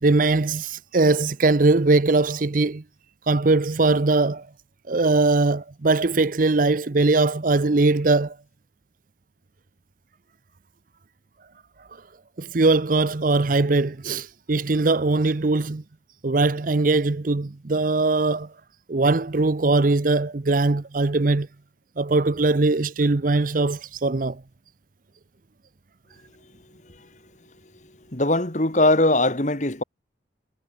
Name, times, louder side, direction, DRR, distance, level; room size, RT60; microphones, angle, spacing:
voice 1, 0.0-2.8 3.3-4.4 4.9-8.4 12.4-15.8 16.2-18.5 18.9-21.5 22.0-24.4, right 3 dB, 45° right, 0.6 m, -21 dB
voice 2, 28.1-29.8, left 2 dB, 40° left, 2.1 m, -20 dB
head